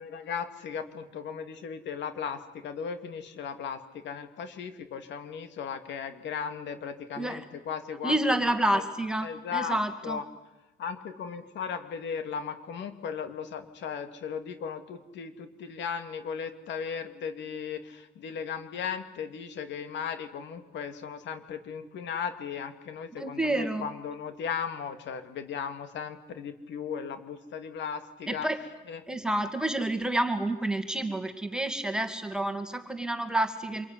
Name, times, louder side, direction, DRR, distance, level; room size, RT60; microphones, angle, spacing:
voice 1, 0.0-8.8 9.2-9.8 10.0-10.2 10.8-28.5 28.9-29.0 29.4-29.5, left 7 dB, 65° left, 9 dB, 2.6 m, -36 dB
voice 2, 8.0-10.2 23.2-23.9 28.3-28.6 29.1-33.8, right 1 dB, 5° right, 6 dB, 2.4 m, -29 dB
27.0 x 22.5 x 9.9 m, 1.0 s
cardioid pair, 140°, 20 cm